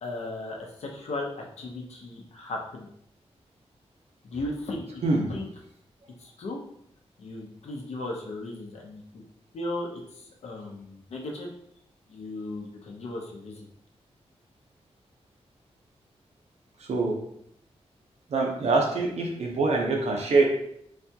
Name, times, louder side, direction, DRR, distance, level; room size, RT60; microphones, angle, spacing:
voice 1, 0.0-2.9 4.2-5.5 6.2-6.6 7.2-9.2 9.5-11.5 12.1-13.6, left 2 dB, 80° left, 0 dB, 0.7 m, -36 dB
voice 2, 16.8-17.2 18.3-20.4, right 3 dB, 75° right, 1 dB, 0.7 m, -24 dB
4.1 x 2.3 x 2.8 m, 0.72 s
wide cardioid pair, 165°, 11 cm